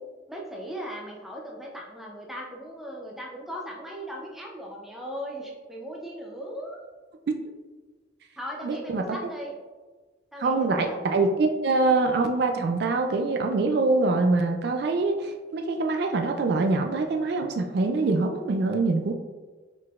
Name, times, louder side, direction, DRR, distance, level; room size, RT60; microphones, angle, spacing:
voice 1, 0.3-6.8 8.4-9.6 10.3-11.0, equal, ahead, -2 dB, 0.5 m, -38 dB
voice 2, 8.6-9.0 10.4-19.1, right 3 dB, 55° right, 4 dB, 0.3 m, -24 dB
4.6 x 3.9 x 2.4 m, 1.3 s
head